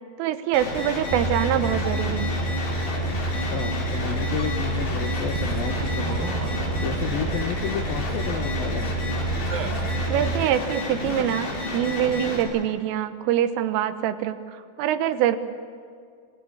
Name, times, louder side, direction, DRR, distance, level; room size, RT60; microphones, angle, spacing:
voice 1, 0.2-2.4 10.1-15.4, right 10 dB, 90° right, 10 dB, 3.7 m, -25 dB
sound 1, 0.5-12.4, left 2 dB, 60° left, 7.0 m, -31 dB
sound 2, 1.1-10.4, right 3 dB, 60° right, 2.5 m, -28 dB
voice 2, 3.2-6.3 6.8-9.3, left 9 dB, 80° left, 4 dB, 2.1 m, -32 dB
27.0 x 20.0 x 8.5 m, 2.1 s
omnidirectional pair, 5.6 m